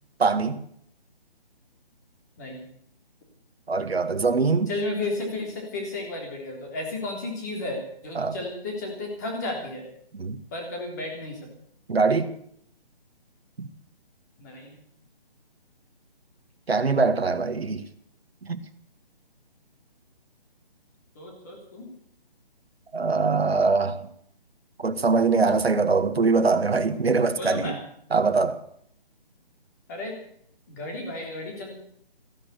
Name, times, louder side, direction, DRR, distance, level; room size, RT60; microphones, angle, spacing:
voice 1, 0.2-0.6 3.7-4.7 8.2-8.4 10.1-10.4 11.9-12.3 13.6-13.7 16.7-17.8 18.4-18.6 22.9-24.0 24.8-27.7 28.1-28.6, right 4 dB, 90° right, 2.0 m, -23 dB
voice 2, 4.7-9.9 10.5-11.5 14.4-14.8 21.2-21.9 27.4-27.8 29.9-30.2 30.7-31.8, left 2 dB, 20° left, 3.4 m, -33 dB
15.5 x 11.0 x 8.1 m
hypercardioid pair, 175°, 30 cm